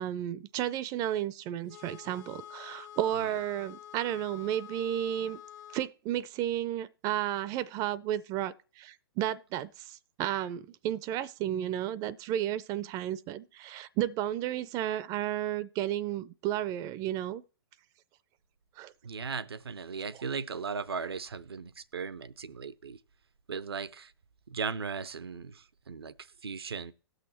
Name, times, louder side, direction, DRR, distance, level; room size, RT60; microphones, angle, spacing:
voice 1, 0.0-5.4 5.7-17.4 18.8-18.9, right 12 dB, 30° right, 0.4 m, -33 dB
sound 1, 1.7-5.9, left 11 dB, 70° left, 1.5 m, -48 dB
voice 2, 19.0-23.0 23.5-24.1 24.5-26.1 26.4-26.9, right 5 dB, 85° right, 0.6 m, -37 dB
18.0 x 6.4 x 2.9 m
hypercardioid pair, 120°, 13 cm